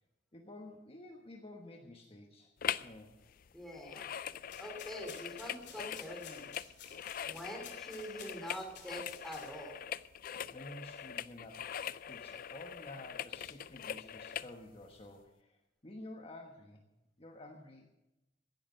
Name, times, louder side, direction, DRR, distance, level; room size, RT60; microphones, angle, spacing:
voice 1, 0.3-2.5 2.8-3.2 10.5-11.8 12.1-16.8 17.2-18.0, left 1 dB, 35° left, 2 dB, 1.3 m, -51 dB
sound 1, 2.6-3.0 3.2-14.5 15.0-15.1, left 9 dB, 50° left, 0.4 m, -42 dB
voice 2, 3.5-4.1 4.6-6.5 7.2-9.8, equal, ahead, 2 dB, 3.0 m, -45 dB
sound 2, 4.4-9.8, left 7 dB, 70° left, 2.9 m, -55 dB
15.5 x 9.8 x 6.8 m, 0.94 s
head